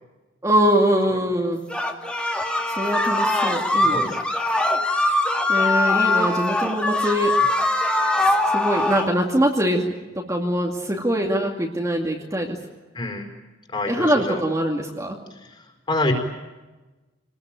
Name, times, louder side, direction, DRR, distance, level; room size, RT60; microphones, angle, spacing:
voice 1, 0.4-1.6 2.8-4.1 5.5-7.3 8.5-12.5 13.9-15.2, equal, 15° right, 0 dB, 2.4 m, -23 dB
sound 1, 1.7-9.1, left 2 dB, 5° left, 2.3 m, -22 dB
voice 2, 3.8-4.2 12.9-13.3 13.7-14.4 15.3-16.1, left 2 dB, 25° left, 4 dB, 4.7 m, -27 dB
27.5 x 20.5 x 9.2 m, 1.2 s
head